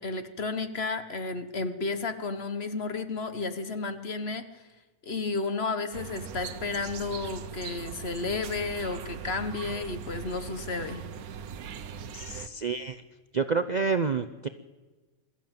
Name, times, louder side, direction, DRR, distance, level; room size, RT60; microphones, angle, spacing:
voice 1, 0.0-4.6 5.0-11.0, left 3 dB, 45° left, 9 dB, 1.4 m, -32 dB
sound 1, 5.9-12.5, right 7 dB, 85° right, 1.4 m, -40 dB
voice 2, 12.1-13.0 13.3-14.5, right 5 dB, 45° right, 10 dB, 0.6 m, -28 dB
22.0 x 14.0 x 9.0 m, 1.3 s
omnidirectional pair, 1.5 m